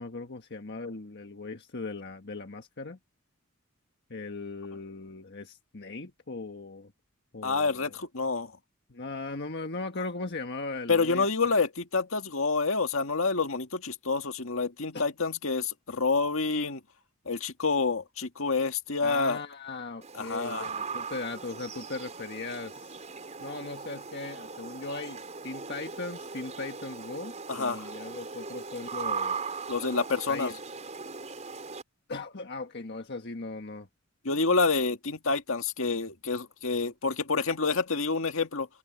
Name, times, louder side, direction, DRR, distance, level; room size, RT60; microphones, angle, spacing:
voice 1, 0.0-3.0 4.1-6.9 7.3-8.0 8.9-11.6 14.9-15.1 19.0-23.1 23.4-29.6 30.3-30.5 32.1-33.9, left 3 dB, 55° left, 1.5 m, -38 dB
voice 2, 7.4-8.5 10.9-16.8 17.3-19.4 20.1-20.7 27.5-27.9 29.7-30.5 34.2-38.7, left 4 dB, 70° left, 2.0 m, -28 dB
sound 1, 20.0-31.8, right 5 dB, 35° right, 5.1 m, -39 dB
head